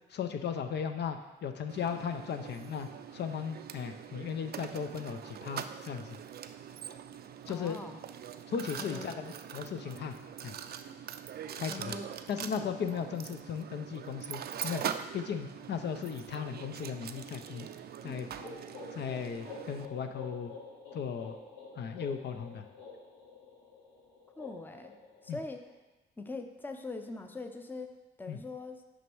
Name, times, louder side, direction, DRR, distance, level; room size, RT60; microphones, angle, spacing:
voice 1, 0.1-6.2 7.5-7.8 8.5-10.1 10.4-10.6 11.6-11.9 12.3-17.7 18.0-18.3 18.9-20.5 20.9-21.4 21.8-22.7 25.3-25.4 28.3-28.4, left 7 dB, 60° left, 7 dB, 0.6 m, -36 dB
Mechanisms, 1.7-19.8, right 9 dB, 50° right, 0.4 m, -43 dB
voice 2, 7.5-8.0 8.8-9.1 11.7-12.1 24.4-24.9 25.2-25.6 26.2-27.9 28.2-28.8, left 3 dB, 10° left, 6 dB, 0.6 m, -42 dB
sound 1, 18.0-25.7, left 3 dB, 85° left, 2.6 m, -49 dB
6.3 x 5.3 x 4.6 m, 1.1 s
cardioid pair, 90°, 20 cm